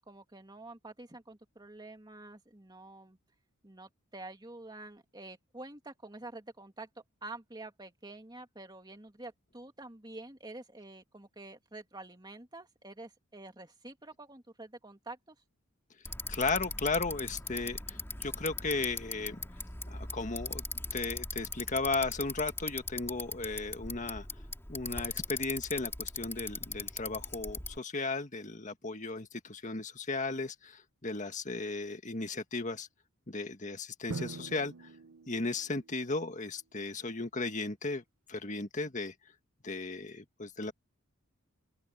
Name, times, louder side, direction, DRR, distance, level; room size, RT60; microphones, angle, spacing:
voice 1, 0.0-3.2 3.6-15.4, right 2 dB, 20° right, 2.4 m, -48 dB
Bicycle, 16.1-27.8, left 3 dB, 10° left, 2.9 m, -40 dB
voice 2, 16.3-19.4 19.9-20.6 20.9-24.3 24.7-32.9 33.3-34.9 35.3-38.0 38.3-39.1 39.6-40.7, left 3 dB, 35° left, 1.7 m, -35 dB
Drum, 34.1-36.0, right 3 dB, 85° right, 0.7 m, -43 dB
open air
head